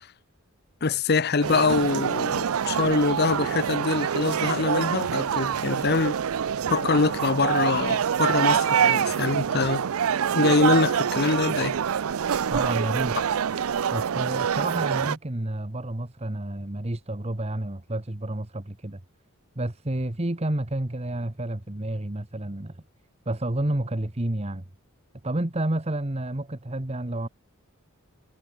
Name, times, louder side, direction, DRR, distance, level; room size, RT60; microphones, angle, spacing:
voice 1, 0.8-6.2 6.7-9.9 10.3-11.8, left 4 dB, 50° left, 0.8 m, -24 dB
sound 1, 1.4-15.2, right 8 dB, 80° right, 0.5 m, -25 dB
voice 2, 12.5-13.2 13.9-19.0 19.5-22.8 23.2-24.6 25.2-27.3, right 1 dB, 30° right, 1.3 m, -30 dB
head